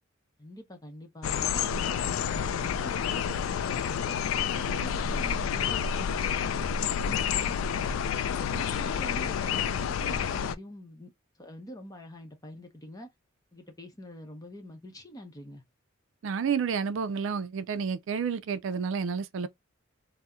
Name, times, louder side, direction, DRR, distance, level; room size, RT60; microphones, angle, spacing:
voice 1, 0.4-4.1 4.5-6.6 7.0-7.9 8.2-11.1 11.4-13.1 13.5-15.6, equal, 20° left, 0.7 m, -45 dB
sound 1, 1.2-10.5, left 7 dB, 75° left, 0.3 m, -29 dB
voice 2, 16.2-19.5, right 6 dB, 65° right, 0.4 m, -30 dB
2.7 x 2.0 x 3.5 m
head